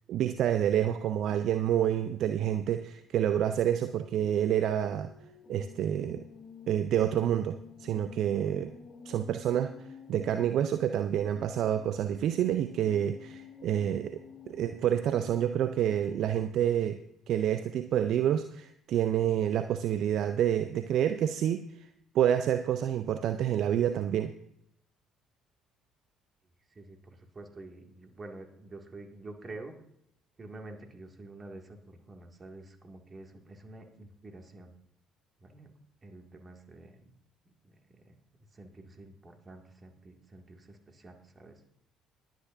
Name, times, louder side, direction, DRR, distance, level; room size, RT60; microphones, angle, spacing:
voice 1, 0.1-5.1 5.5-6.2 6.7-8.7 9.1-9.7 10.1-14.2 14.5-17.0 17.3-21.7 22.1-24.3, right 10 dB, 60° right, 10 dB, 0.5 m, -28 dB
sound 1, 3.7-16.2, left 6 dB, 40° left, 1.8 m, -51 dB
voice 2, 26.7-29.7 30.4-34.7 35.4-35.7 36.0-37.1 37.4-37.7 38.0-38.1 38.5-41.6, right 2 dB, 30° right, 3 dB, 2.2 m, -48 dB
20.5 x 9.2 x 2.7 m, 0.71 s
hypercardioid pair, 50°, 0 cm